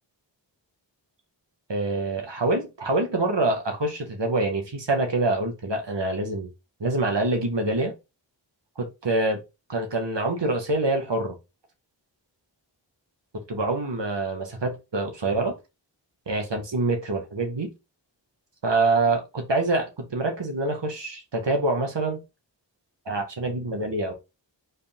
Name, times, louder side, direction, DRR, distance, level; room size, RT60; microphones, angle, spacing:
voice 1, 1.7-6.5 6.8-7.9 8.8-9.4 9.7-11.4 13.5-15.5 16.3-17.7 18.6-22.2 23.1-24.1, right 2 dB, 70° right, 2.2 m, -25 dB
5.1 x 4.9 x 3.9 m
wide cardioid pair, 70°, 44 cm